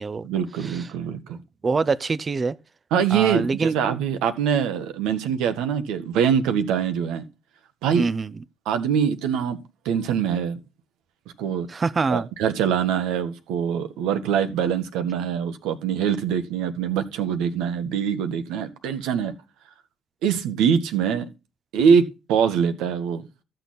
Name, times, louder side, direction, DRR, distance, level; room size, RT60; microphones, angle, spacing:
voice 1, 0.2-1.4 2.9-7.2 7.8-8.0 8.7-9.6 9.8-10.6 11.4-11.7 12.1-19.3 20.2-21.3 21.7-23.2, right 7 dB, 75° right, 1.2 m, -23 dB
voice 2, 1.6-2.6 3.1-3.8 7.9-8.4 11.7-12.3, right 4 dB, 40° right, 0.7 m, -25 dB
13.5 x 6.7 x 4.1 m
hypercardioid pair, 50°, 0 cm